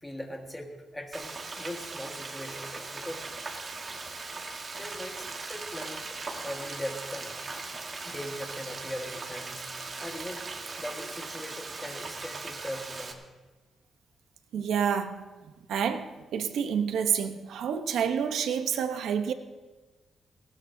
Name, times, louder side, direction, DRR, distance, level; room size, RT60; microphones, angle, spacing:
voice 1, 0.0-3.2 4.8-6.1 6.4-7.3 8.0-9.7 10.0-10.4 10.8-13.2, left 1 dB, 10° left, 1 dB, 1.7 m, -40 dB
Frying (food), 1.1-13.1, right 3 dB, 30° right, 1.4 m, -39 dB
voice 2, 14.5-15.2 15.7-19.3, right 7 dB, 85° right, 7 dB, 1.0 m, -28 dB
19.0 x 18.0 x 2.8 m, 1.3 s
wide cardioid pair, 160°, 0 cm